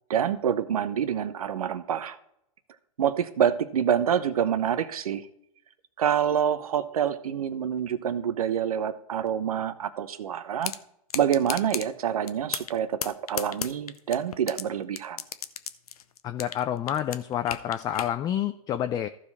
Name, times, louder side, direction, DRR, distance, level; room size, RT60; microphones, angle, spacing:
voice 1, 0.1-2.2 3.0-5.3 6.0-10.7 11.1-15.2, right 9 dB, 80° right, 13 dB, 1.0 m, -27 dB
sound 1, 10.6-10.8 11.1-11.9 12.3-12.7 13.0-14.6 14.9-16.6 16.9-18.1, left 8 dB, 85° left, 0.8 m, -33 dB
voice 2, 16.2-19.1, left 10 dB, 20° left, 10 dB, 0.4 m, -28 dB
14.5 x 5.0 x 4.1 m, 0.74 s
hypercardioid pair, 125°, 19 cm